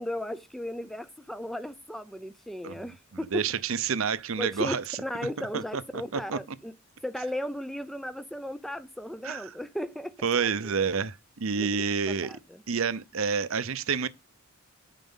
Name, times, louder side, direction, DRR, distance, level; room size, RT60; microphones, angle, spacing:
voice 1, 0.0-3.3 4.4-4.7 5.0-6.7 7.0-10.3 10.6-10.7 11.6-11.7 12.1-12.6, left 1 dB, ahead, 0.5 m, -36 dB
voice 2, 3.3-4.8 5.5-6.4 9.2-9.4 10.2-12.4 12.7-14.1, right 5 dB, 70° right, 0.7 m, -29 dB
9.3 x 4.9 x 5.5 m
head